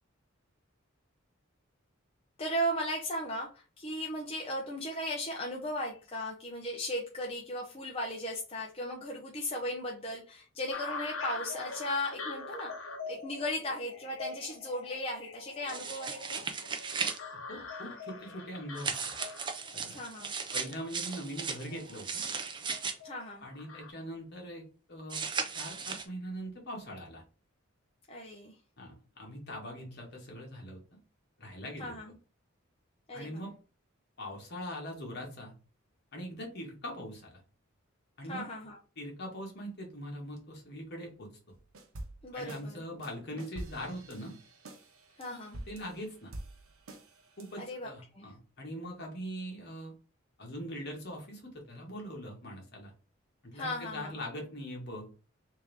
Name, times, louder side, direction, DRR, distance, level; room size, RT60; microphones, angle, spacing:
voice 1, 2.4-16.4 19.9-20.3 23.0-23.5 28.1-28.5 31.8-32.2 33.1-33.4 38.3-38.8 42.2-42.8 45.2-45.6 47.6-48.3 53.5-54.2, equal, 30° left, -2 dB, 0.7 m, -37 dB
sound 1, 10.7-23.9, left 4 dB, 70° left, 0.9 m, -44 dB
sound 2, 15.7-17.2 18.8-22.9 25.1-26.0, right 5 dB, 25° right, 0.5 m, -36 dB
voice 2, 17.3-19.1 19.7-20.0 20.5-22.2 23.4-25.2 25.5-27.2 28.8-30.8 31.4-32.0 33.1-33.5 34.2-35.5 36.1-37.4 38.2-38.4 39.0-41.3 42.3-44.3 45.7-46.3 47.4-49.9 50.4-52.9 53.4-55.1, equal, 55° left, 0 dB, 1.5 m, -42 dB
sound 3, 41.5-42.6 43.0-47.7, right 1 dB, 85° right, 0.9 m, -47 dB
3.5 x 2.9 x 3.4 m, 0.36 s
head